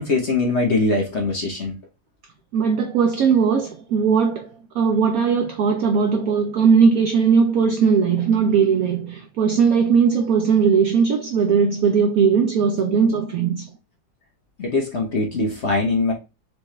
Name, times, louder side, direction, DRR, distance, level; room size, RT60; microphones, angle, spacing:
voice 1, 0.0-1.8 14.6-16.1, left 3 dB, 45° left, 1.0 m, -22 dB
voice 2, 2.5-4.5 4.7-13.7, right 6 dB, 75° right, 0.8 m, -18 dB
4.8 x 3.4 x 3.1 m
omnidirectional pair, 2.1 m